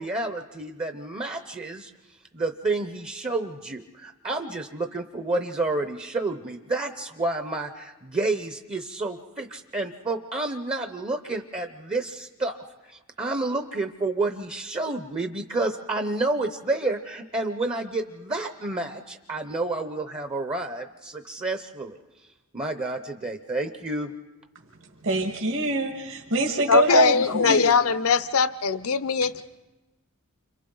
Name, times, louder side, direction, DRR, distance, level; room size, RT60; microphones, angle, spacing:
voice 1, 0.0-1.9 2.3-12.6 12.8-22.0 22.5-24.1, right 2 dB, 25° right, 7 dB, 0.7 m, -30 dB
voice 2, 25.0-27.7, right 2 dB, 60° right, 1 dB, 1.7 m, -24 dB
voice 3, 26.7-29.4, left 5 dB, 65° left, 14 dB, 0.7 m, -21 dB
29.5 x 26.5 x 3.9 m, 1.1 s
head